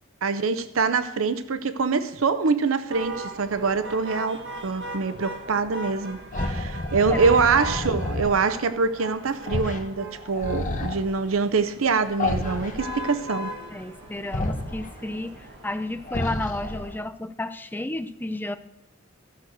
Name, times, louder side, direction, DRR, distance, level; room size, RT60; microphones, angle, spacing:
voice 1, 0.2-13.5, right 4 dB, 75° right, 0.7 m, -24 dB
sound 1, 2.9-17.0, right 1 dB, 60° right, 2.1 m, -38 dB
sound 2, 6.3-8.4 9.5-9.8 10.1-11.0 12.2-13.1 14.3-14.9 16.1-17.0, left 2 dB, 40° left, 1.1 m, -29 dB
voice 2, 13.7-18.6, left 2 dB, 10° left, 0.5 m, -32 dB
14.5 x 6.5 x 6.0 m
head